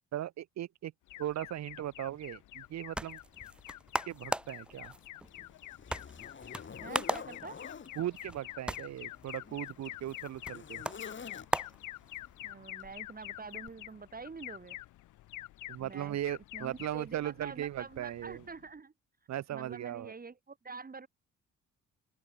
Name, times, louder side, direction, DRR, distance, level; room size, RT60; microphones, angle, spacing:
voice 1, 0.1-0.9 1.2-3.2 4.1-4.9 8.0-10.8 15.7-18.4 19.3-20.1, right 12 dB, 60° right, 1.0 m, -38 dB
Alarm, 1.1-18.7, left 16 dB, 80° left, 0.9 m, -48 dB
sound 1, 2.6-12.5, right 1 dB, 5° right, 0.5 m, -40 dB
Zipper (clothing), 4.3-4.4 5.0-7.9 8.9-11.8 12.8-13.1 13.6-13.7, left 6 dB, 40° left, 4.2 m, -48 dB
voice 2, 6.8-7.6 12.4-14.8 15.8-16.2 16.5-18.9 19.5-21.1, right 4 dB, 30° right, 3.6 m, -46 dB
open air
cardioid pair, 90°, 30 cm